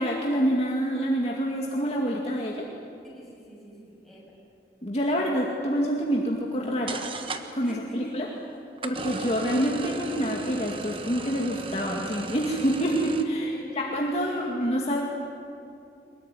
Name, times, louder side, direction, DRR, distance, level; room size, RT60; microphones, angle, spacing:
voice 1, 0.0-2.7 4.8-7.0 7.5-8.3 8.8-15.0, equal, 35° left, -2 dB, 2.3 m, -27 dB
voice 2, 3.0-4.4 7.6-8.2 13.3-13.9 14.2-14.8, equal, ahead, -5 dB, 7.4 m, -45 dB
sound 1, 6.5-6.6 6.9-7.7 8.8-13.2, right 3 dB, 30° right, 1.3 m, -36 dB
23.0 x 21.5 x 10.0 m, 2.6 s
head